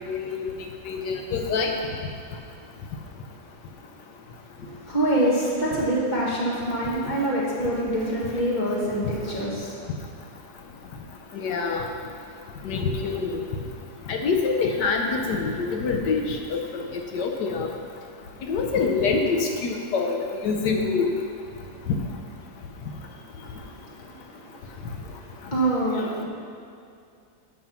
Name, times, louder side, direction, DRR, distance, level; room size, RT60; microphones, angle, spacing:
voice 1, 0.1-0.5 0.9-1.7 11.3-11.9 12.6-13.3 14.1-16.6 17.1-17.7 18.5-20.2 20.4-21.1, left 4 dB, 85° left, 3 dB, 1.4 m, -25 dB
voice 2, 4.6-9.8 23.6-23.9 24.4-24.6 25.5-26.2, right 1 dB, 25° left, -5 dB, 2.0 m, -25 dB
11.5 x 6.0 x 5.8 m, 2.4 s
omnidirectional pair, 1.8 m